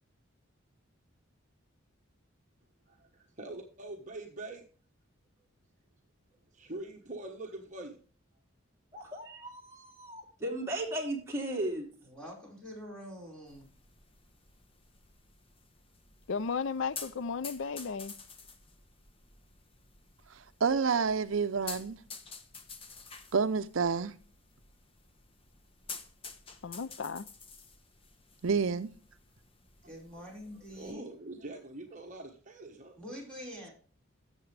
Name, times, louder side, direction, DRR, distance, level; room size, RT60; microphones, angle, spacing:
voice 1, 2.9-4.7 6.5-8.0 29.8-29.9 30.5-33.0, right 2 dB, 35° right, 1.2 m, -44 dB
voice 2, 8.9-11.9, right 1 dB, 15° right, 3.0 m, -36 dB
voice 3, 12.1-13.7 29.8-31.1 33.0-33.7, equal, 5° left, 4.9 m, -45 dB
sound 1, 13.5-30.9, left 5 dB, 25° left, 1.0 m, -50 dB
voice 4, 16.3-18.1 26.6-27.2, left 5 dB, 65° left, 0.4 m, -34 dB
voice 5, 20.3-22.0 23.3-24.1 28.4-28.9, right 5 dB, 70° right, 0.6 m, -29 dB
14.0 x 7.3 x 3.3 m
head